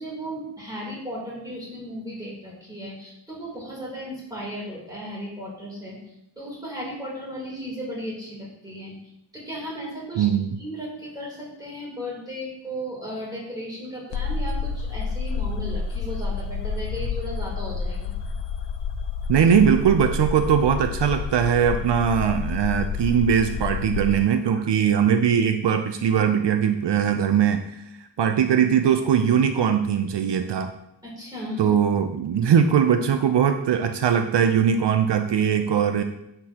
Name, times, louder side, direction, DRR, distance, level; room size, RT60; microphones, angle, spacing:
voice 1, 0.0-6.0 6.3-8.9 9.3-10.3 10.6-18.1 31.0-31.7, equal, 10° right, -6 dB, 3.3 m, -35 dB
voice 2, 10.2-10.6 19.3-27.8 28.2-30.7 31.6-36.0, right 8 dB, 75° right, 7 dB, 0.6 m, -20 dB
sound 1, 14.1-24.2, left 5 dB, 90° left, 0.6 m, -29 dB
10.0 x 6.9 x 2.9 m, 0.83 s
wide cardioid pair, 155°, 42 cm